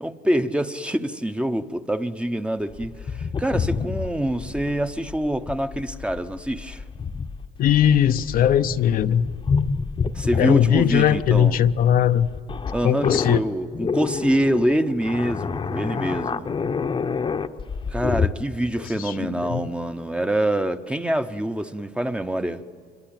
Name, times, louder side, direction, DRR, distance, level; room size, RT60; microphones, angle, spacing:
voice 1, 0.0-6.8 10.1-11.6 12.7-16.5 17.9-22.6, right 1 dB, 5° right, 0.9 m, -25 dB
sound 1, 2.7-18.3, left 5 dB, 30° left, 0.9 m, -28 dB
voice 2, 7.6-9.3 10.4-12.3 12.8-13.4 18.8-19.7, left 10 dB, 60° left, 0.7 m, -19 dB
26.5 x 22.0 x 8.9 m
cardioid pair, 110°, 17 cm